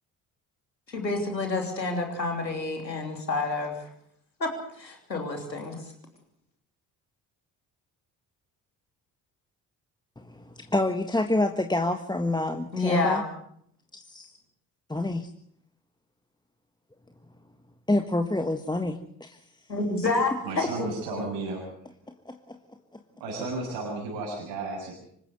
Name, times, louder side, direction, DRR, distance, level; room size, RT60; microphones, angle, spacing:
voice 1, 0.9-3.7 4.4-4.5 4.8-5.7 12.7-13.2 19.7-21.3, left 3 dB, 90° left, 3 dB, 3.2 m, -28 dB
voice 2, 10.2-13.2 13.9-14.3 14.9-15.3 17.9-19.4 22.2-22.6, left 2 dB, 10° left, 6 dB, 1.5 m, -28 dB
voice 3, 20.4-21.6 23.2-24.9, right 3 dB, 70° right, -2 dB, 7.0 m, -33 dB
26.0 x 14.5 x 7.9 m, 0.70 s
figure-of-eight pair, 45°, 49 cm